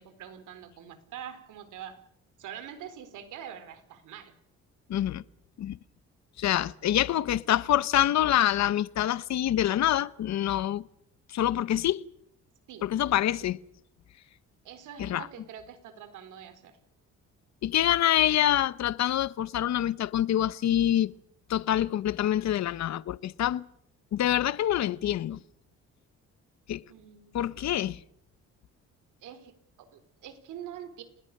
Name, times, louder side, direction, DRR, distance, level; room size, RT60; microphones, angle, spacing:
voice 1, 0.0-2.0 2.4-4.3 12.7-12.9 13.3-13.5 14.6-16.8 26.9-27.4 29.2-31.0, right 9 dB, 85° right, 4.1 m, -44 dB
voice 2, 4.9-5.2 5.6-5.8 6.4-10.8 11.3-12.0 12.8-13.6 15.0-15.3 17.6-21.1 21.5-23.6 24.1-25.4 26.7-26.8 27.3-28.0, left 12 dB, 65° left, 0.9 m, -26 dB
28.5 x 20.5 x 6.7 m
cardioid pair, 90°, 30 cm